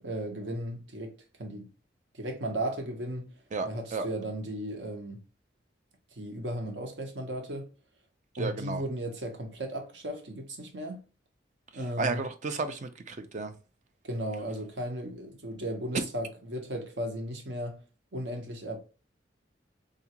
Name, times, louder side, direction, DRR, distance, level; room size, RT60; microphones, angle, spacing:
voice 1, 0.0-1.7 2.1-3.3 3.6-5.2 6.1-7.7 8.4-11.0 11.7-12.2 14.0-17.8 18.1-18.8, right 1 dB, 70° right, 0.9 m, -35 dB
voice 2, 3.5-4.1 8.4-8.8 12.0-13.5, right 4 dB, 40° right, 0.4 m, -33 dB
3.6 x 2.4 x 2.8 m
head